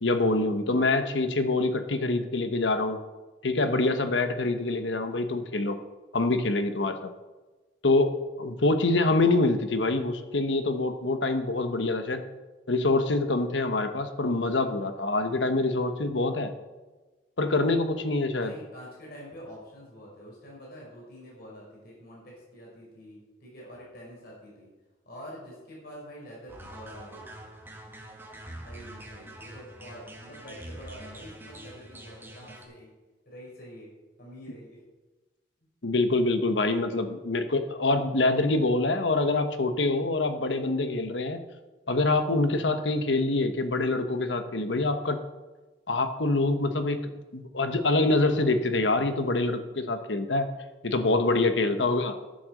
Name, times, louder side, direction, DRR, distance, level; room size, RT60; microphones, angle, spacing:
voice 1, 0.0-3.0 3.4-5.8 6.1-7.1 7.8-12.2 12.7-16.5 17.4-18.5 35.8-41.4 41.9-45.2 45.9-47.0 47.3-50.5 50.8-52.1, left 2 dB, 80° left, 8 dB, 1.1 m, -25 dB
voice 2, 18.4-24.7 25.0-27.3 28.5-32.9 33.2-33.9 34.2-34.8 42.5-42.7 46.8-46.9 51.7-51.9, equal, 55° left, -3 dB, 4.9 m, -46 dB
sound 1, 26.5-32.6, right 1 dB, 10° right, 1.8 m, -45 dB
11.5 x 7.9 x 6.5 m, 1.2 s
head